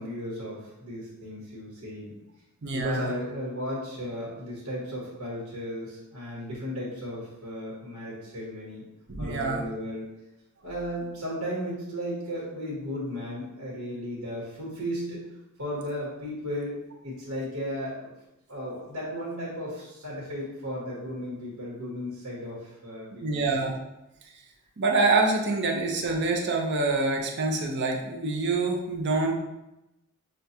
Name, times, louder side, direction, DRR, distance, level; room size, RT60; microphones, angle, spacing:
voice 1, 0.0-2.2 2.7-8.8 9.2-10.1 10.6-15.2 15.6-18.1 18.5-23.4, equal, 85° right, -6 dB, 1.3 m, -35 dB
voice 2, 2.6-3.1 9.1-9.6 23.2-23.8 24.8-29.3, right 3 dB, 50° right, 1 dB, 0.7 m, -26 dB
6.3 x 2.3 x 2.8 m, 0.93 s
head